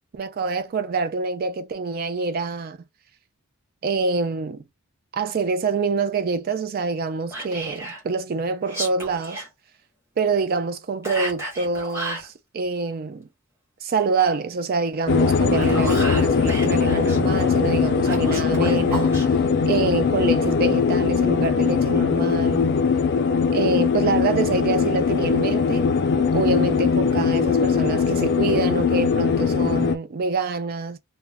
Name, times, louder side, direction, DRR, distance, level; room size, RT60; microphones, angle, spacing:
voice 1, 0.1-2.8 3.8-4.6 5.1-9.4 10.2-13.3 13.8-19.2 19.7-22.7 23.5-25.9 26.3-31.0, right 4 dB, 40° right, 0.3 m, -26 dB
Whispering, 7.3-8.0 8.6-9.5 11.0-12.3 15.3-17.2 18.0-19.3, right 2 dB, 10° right, 0.9 m, -32 dB
sound 1, 15.1-29.9, left 5 dB, 50° left, 0.3 m, -20 dB
2.3 x 2.0 x 3.3 m
head